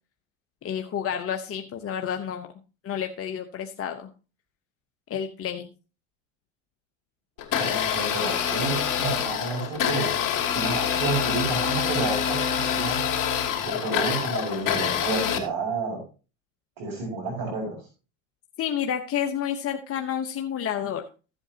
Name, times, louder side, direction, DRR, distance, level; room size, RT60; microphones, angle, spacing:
voice 1, 0.6-2.5 2.8-4.1 5.1-5.7 18.6-21.0, left 9 dB, 40° left, 5 dB, 1.0 m, -30 dB
Domestic sounds home sounds, 7.4-15.4, left 8 dB, 60° left, 2.6 m, -26 dB
voice 2, 7.6-10.1 10.5-13.0 13.6-16.0 16.8-17.8, right 4 dB, 70° right, -3 dB, 5.0 m, -30 dB
14.5 x 8.0 x 2.9 m, 0.34 s
hypercardioid pair, 80°, 37 cm